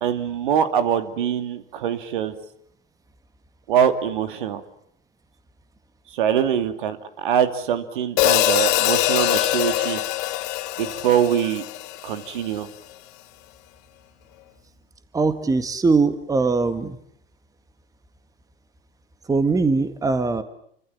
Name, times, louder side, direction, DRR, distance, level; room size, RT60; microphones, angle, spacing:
voice 1, 0.0-2.3 3.7-4.6 6.1-10.0 10.8-11.6 12.0-12.7, right 9 dB, 60° right, 9 dB, 2.8 m, -23 dB
Hi-hat, 8.2-12.5, left 15 dB, 45° left, 1.8 m, -23 dB
voice 2, 15.1-17.0 19.3-20.4, right 4 dB, 10° right, 11 dB, 1.9 m, -21 dB
29.5 x 25.5 x 7.4 m, 0.67 s
figure-of-eight pair, 85°, 29 cm